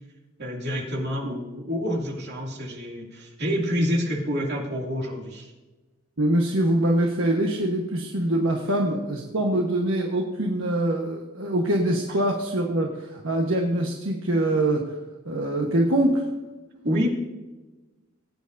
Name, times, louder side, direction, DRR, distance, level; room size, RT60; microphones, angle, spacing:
voice 1, 0.4-5.5 16.8-17.1, equal, 60° right, -1 dB, 2.5 m, -27 dB
voice 2, 6.2-15.0 15.3-16.2, right 1 dB, 75° right, 0 dB, 1.3 m, -24 dB
20.5 x 9.2 x 2.7 m, 1.2 s
head